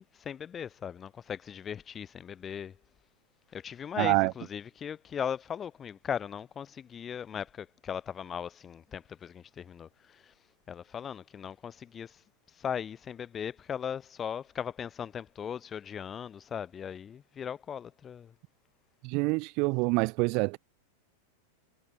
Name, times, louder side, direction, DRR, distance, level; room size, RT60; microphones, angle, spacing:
voice 1, 0.0-2.7 3.5-10.3 10.7-12.2 12.6-18.3, left 8 dB, 25° left, 1.3 m, -38 dB
voice 2, 4.0-4.3 19.0-20.6, right 28 dB, 50° right, 0.8 m, -26 dB
hypercardioid pair, 115°, 0 cm